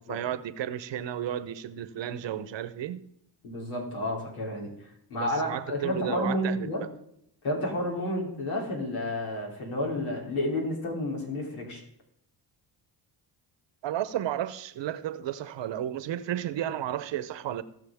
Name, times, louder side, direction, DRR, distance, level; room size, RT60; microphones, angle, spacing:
voice 1, 0.1-3.0 5.2-6.7 13.8-17.6, right 11 dB, 65° right, 0.9 m, -33 dB
voice 2, 3.4-4.7 5.1-6.8 7.4-11.8, left 1 dB, 90° left, 3.3 m, -30 dB
18.5 x 6.4 x 3.5 m
supercardioid pair, 70°, 48 cm